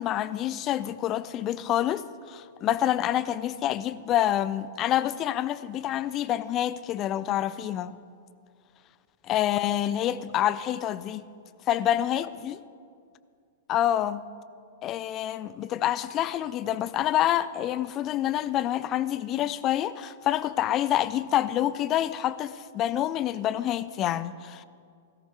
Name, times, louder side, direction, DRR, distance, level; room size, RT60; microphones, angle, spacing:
voice 1, 0.0-7.9 9.2-11.2 11.7-12.6 13.7-14.2 14.8-24.6, left 12 dB, 30° left, 0.5 m, -27 dB
17.0 x 14.5 x 4.8 m
figure-of-eight pair, 105°, 0 cm